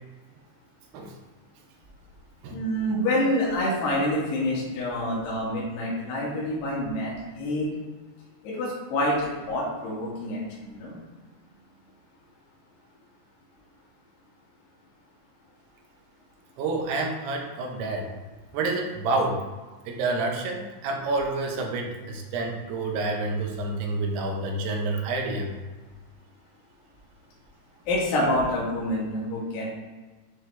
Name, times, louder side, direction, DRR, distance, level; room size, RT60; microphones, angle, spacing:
voice 1, 2.5-7.7 8.4-11.0 27.9-29.7, left 1 dB, 80° left, -6 dB, 4.0 m, -27 dB
voice 2, 16.6-18.1 18.5-19.4 19.9-25.5, right 2 dB, 80° right, 1 dB, 3.0 m, -28 dB
10.5 x 3.8 x 3.4 m, 1.2 s
omnidirectional pair, 4.7 m